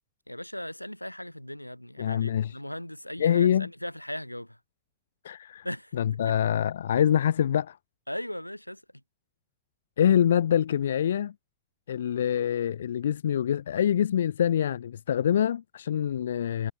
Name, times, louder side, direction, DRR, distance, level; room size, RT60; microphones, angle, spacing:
voice 1, 0.3-4.6 5.6-5.9 6.2-6.4 8.1-8.8, left 1 dB, 90° left, 7.9 m, -38 dB
voice 2, 2.0-2.6 3.2-3.7 5.2-5.6 6.0-7.8 10.0-11.3 11.9-16.7, left 9 dB, 65° left, 1.5 m, -25 dB
figure-of-eight pair, 90°, 0 cm